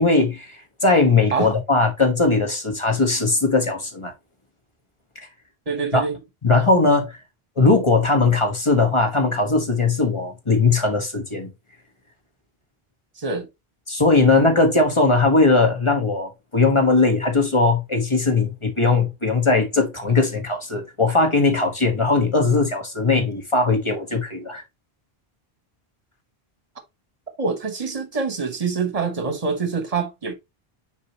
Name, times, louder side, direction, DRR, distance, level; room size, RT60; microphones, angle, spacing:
voice 1, 0.0-4.1 5.9-6.0 6.4-7.2 7.6-11.5 13.9-24.6, left 3 dB, 30° left, 1.5 m, -19 dB
voice 2, 5.7-6.2 13.2-13.5 27.4-30.3, right 5 dB, 35° right, 1.3 m, -25 dB
6.6 x 4.9 x 2.9 m
omnidirectional pair, 1.0 m